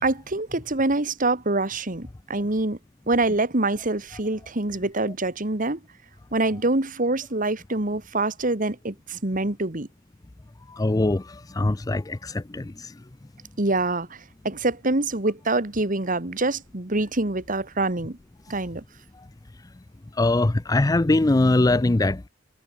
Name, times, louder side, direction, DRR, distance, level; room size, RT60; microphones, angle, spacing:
voice 1, 0.0-2.8 3.1-5.8 6.3-9.9 13.6-14.2 14.4-18.2 18.5-18.8, right 2 dB, 45° right, 2.1 m, -25 dB
voice 2, 10.7-12.9 20.2-22.3, left 2 dB, 20° left, 0.5 m, -22 dB
head